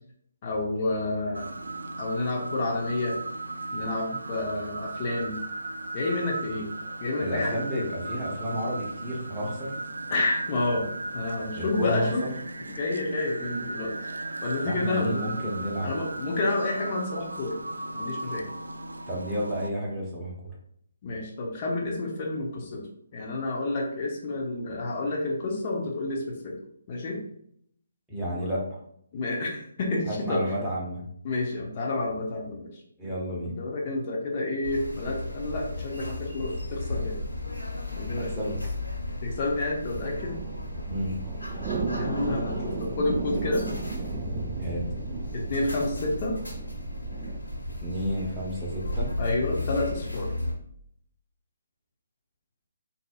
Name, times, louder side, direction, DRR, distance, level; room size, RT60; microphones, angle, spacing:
voice 1, 0.4-1.5 2.0-3.2 3.7-5.4 5.9-6.7 7.0-7.6 10.1-12.2 12.7-13.9 14.4-15.2 15.8-17.6 17.9-18.4 21.0-22.8 23.1-26.6 26.9-27.2 28.3-28.5 29.1-30.5 31.2-32.7 33.4-37.2 38.0-38.3 39.2-40.4 42.0-43.7 45.3-46.4 49.2-50.3, left 2 dB, 40° left, -1 dB, 0.7 m, -29 dB
sound 1, 1.3-19.7, right 2 dB, 85° right, 0.3 m, -36 dB
voice 2, 7.2-9.7 11.6-12.3 14.6-16.0 19.1-20.3 28.1-28.7 30.1-31.1 33.0-33.5 38.2-38.6 40.9-41.2 44.6-44.8 47.8-49.1, equal, 5° right, -7 dB, 1.0 m, -31 dB
sound 2, 34.6-50.5, left 1 dB, 85° left, 1.5 m, -35 dB
sound 3, 39.8-47.4, right 3 dB, 25° right, 0.5 m, -34 dB
3.9 x 2.7 x 2.3 m, 0.68 s
figure-of-eight pair, 150°, 0 cm